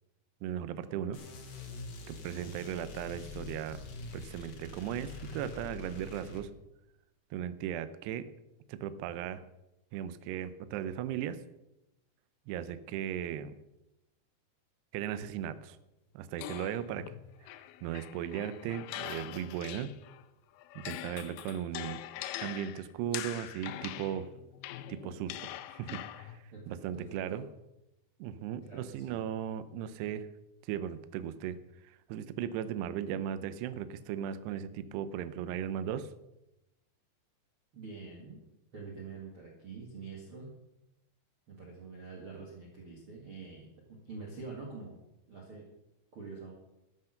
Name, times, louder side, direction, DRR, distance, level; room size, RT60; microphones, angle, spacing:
voice 1, 0.4-1.2 2.1-3.8 4.1-6.5 7.3-8.3 8.7-9.4 9.9-11.4 12.5-13.5 14.9-15.8 16.1-17.1 17.4-17.5 17.8-19.9 20.8-22.0 22.4-24.3 24.9-27.4 28.2-30.3 30.6-31.6 31.8-36.1, right 10 dB, 80° right, 13 dB, 2.7 m, -37 dB
sound 1, 1.1-6.4, left 3 dB, 50° left, 2.0 m, -45 dB
sound 2, 16.4-20.2 20.6-26.4, left 14 dB, 80° left, 2.3 m, -43 dB
voice 2, 26.5-27.4 28.6-29.2 37.7-38.4 38.7-40.5 41.5-45.0 45.3-45.7 46.1-46.5, right 4 dB, 40° right, -2 dB, 2.3 m, -46 dB
13.5 x 8.9 x 6.5 m, 0.91 s
omnidirectional pair, 4.9 m